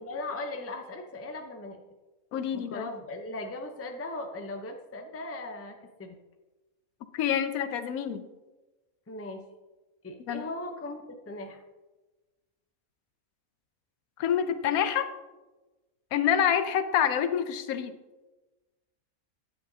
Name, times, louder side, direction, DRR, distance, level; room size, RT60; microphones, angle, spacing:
voice 1, 0.0-1.8 2.5-6.2 9.1-9.4 10.0-11.6, left 2 dB, 20° left, 4 dB, 0.4 m, -38 dB
voice 2, 2.3-2.9 7.1-8.3 10.3-10.4 14.2-15.1 16.1-17.9, left 9 dB, 85° left, 10 dB, 1.1 m, -27 dB
9.9 x 8.9 x 2.7 m, 1.2 s
omnidirectional pair, 1.5 m